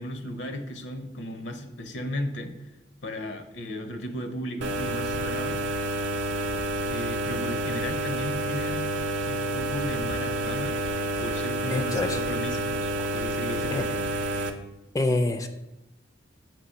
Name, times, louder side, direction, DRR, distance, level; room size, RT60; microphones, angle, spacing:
voice 1, 0.0-2.7 3.0-5.6 6.7-8.9 9.3-10.8 11.2-14.1, equal, 75° left, 7 dB, 0.8 m, -35 dB
sound 1, 4.6-14.5, right 1 dB, 70° right, 0.6 m, -29 dB
voice 2, 11.7-12.2 13.7-13.9 14.9-15.5, left 2 dB, 20° left, 7 dB, 0.3 m, -26 dB
6.9 x 3.1 x 5.5 m, 0.95 s
head